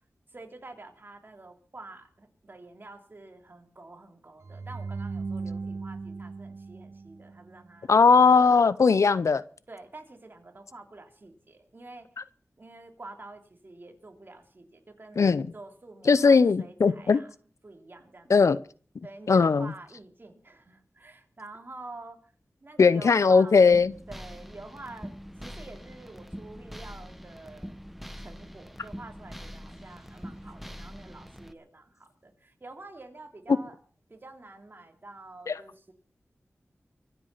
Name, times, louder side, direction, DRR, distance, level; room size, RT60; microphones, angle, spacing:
voice 1, 0.3-8.4 9.7-12.1 12.6-17.3 17.6-18.3 19.0-22.3 22.6-23.8 24.1-25.1 25.4-27.8 28.2-33.8 34.1-35.9, right 2 dB, 40° right, 4 dB, 3.1 m, -47 dB
sound 1, 4.4-7.6, right 4 dB, 60° right, 0.8 m, -37 dB
voice 2, 7.9-9.4 15.2-15.5 16.1-17.2 18.3-18.6 19.3-19.7 22.8-23.9 35.5-35.6, left 5 dB, 75° left, 17 dB, 0.7 m, -19 dB
sound 2, 23.7-31.5, equal, 5° right, 1.3 m, -43 dB
24.5 x 8.2 x 5.7 m, 0.43 s
wide cardioid pair, 80°, 5 cm